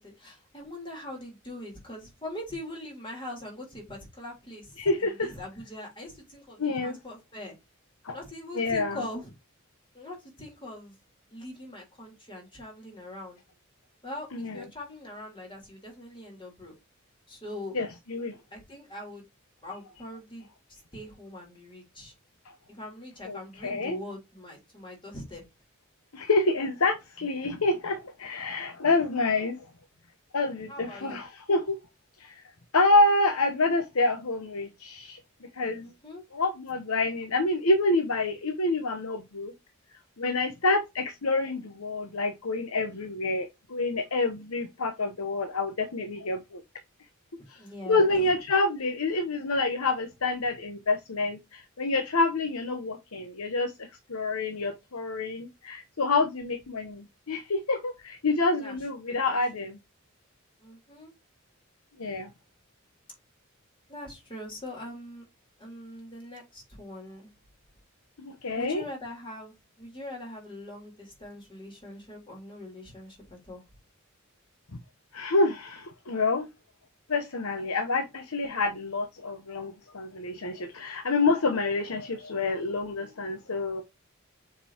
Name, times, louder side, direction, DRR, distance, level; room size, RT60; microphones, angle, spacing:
voice 1, 0.0-7.5 8.1-9.3 9.9-11.0 11.3-13.4 14.0-16.7 17.3-17.7 18.5-19.2 19.6-22.1 22.7-25.4 30.7-31.2 35.8-36.2 47.6-48.3 58.6-58.8 59.1-59.3 60.6-61.1 63.9-65.3 65.6-67.3 68.6-73.6, left 1 dB, 25° left, 3.7 m, -42 dB
voice 2, 4.8-5.3 6.6-7.0 8.0-8.2 8.5-9.0 14.3-14.6 17.7-18.4 23.2-24.0 26.1-29.6 30.3-31.8 32.2-32.4 32.7-35.2 35.5-35.9 36.3-39.5 40.2-46.6 47.5-47.6 47.9-59.8 62.0-62.3 68.2-68.8 75.1-76.5 77.1-83.8, left 2 dB, 85° left, 1.0 m, -27 dB
7.0 x 5.3 x 2.8 m
head